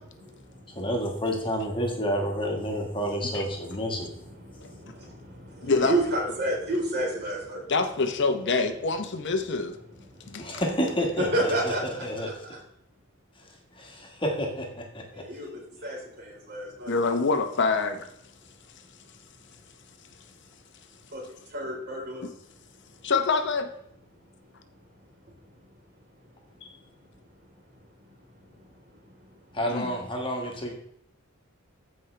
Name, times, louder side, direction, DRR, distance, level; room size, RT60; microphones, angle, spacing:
voice 1, 0.2-0.8 4.3-7.7 10.1-10.4 11.3-11.8 12.2-12.6 15.1-17.0 21.1-21.2 21.5-22.2 28.6-28.7, right 1 dB, 50° right, -2 dB, 3.9 m, -31 dB
voice 2, 0.7-4.1 10.4-12.6 13.4-13.5 13.7-15.3 29.5-30.7, equal, 25° left, 1 dB, 1.6 m, -30 dB
voice 3, 5.6-6.0 7.7-9.8 10.3-10.4 16.9-18.1 23.0-23.7 26.6-26.7 29.7-29.9, left 4 dB, 55° left, 7 dB, 0.9 m, -25 dB
14.5 x 5.4 x 3.3 m, 0.74 s
head